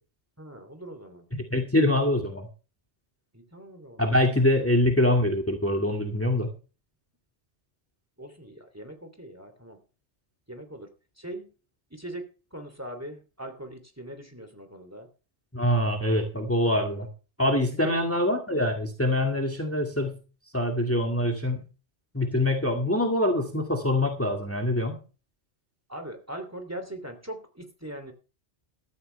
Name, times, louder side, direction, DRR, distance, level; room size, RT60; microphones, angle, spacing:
voice 1, 0.4-1.3 3.3-4.3 8.2-9.8 10.5-10.9 11.2-11.5 11.9-12.3 12.5-15.1 17.8-17.9 25.9-28.1, right 1 dB, 15° right, 6 dB, 2.9 m, -41 dB
voice 2, 1.3-2.5 4.0-6.5 15.5-17.1 17.4-20.2 20.5-21.6 22.1-25.0, left 1 dB, 10° left, 3 dB, 2.1 m, -24 dB
14.0 x 14.0 x 3.3 m, 0.34 s
omnidirectional pair, 1.2 m